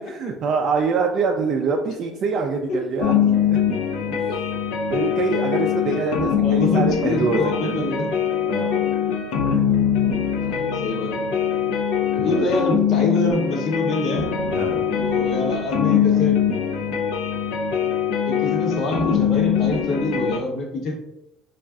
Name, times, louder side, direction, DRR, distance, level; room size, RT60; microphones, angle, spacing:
voice 1, 0.0-3.1 3.4-3.6 4.9-7.9 8.5-8.9 9.5-9.7 12.2-12.4 14.5-14.9, right 4 dB, 45° right, 2 dB, 0.3 m, -25 dB
sound 1, 3.0-20.4, left 8 dB, 85° left, 0.5 m, -22 dB
voice 2, 4.0-4.4 6.3-8.1 10.4-11.2 12.1-14.3 15.0-16.5 18.3-20.9, left 2 dB, 55° left, 2 dB, 0.8 m, -25 dB
5.2 x 2.4 x 2.3 m, 0.90 s
cardioid pair, 140°, 0 cm